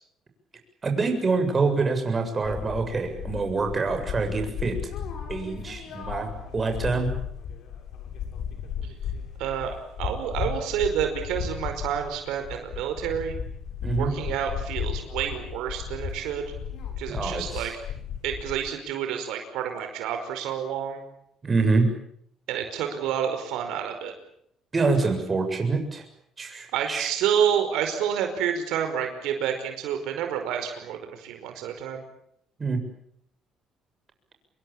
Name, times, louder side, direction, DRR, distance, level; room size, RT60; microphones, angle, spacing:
voice 1, 0.8-4.8 5.3-7.1 13.8-14.1 17.1-17.7 21.4-21.9 24.7-26.0 26.4-27.1 32.6-32.8, right 4 dB, 25° right, 5 dB, 7.4 m, -26 dB
sound 1, 2.4-18.7, left 7 dB, 65° left, 7.9 m, -35 dB
voice 2, 9.4-13.4 14.0-16.4 17.0-17.7 18.2-21.0 22.5-24.1 26.7-32.0, right 9 dB, 85° right, 6 dB, 5.0 m, -29 dB
27.5 x 22.5 x 8.8 m, 0.72 s
cardioid pair, 115°, 0 cm